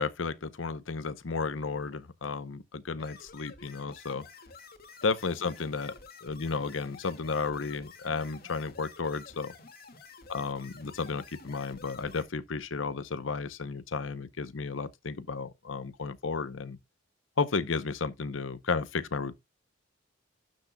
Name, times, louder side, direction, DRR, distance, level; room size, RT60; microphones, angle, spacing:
voice 1, 0.0-4.2 5.0-5.9 6.2-9.5 10.3-16.8 17.4-19.3, left 4 dB, 90° left, 0.8 m, -33 dB
sound 1, 2.9-12.2, left 4 dB, 55° left, 2.0 m, -51 dB
12.0 x 6.3 x 2.3 m
head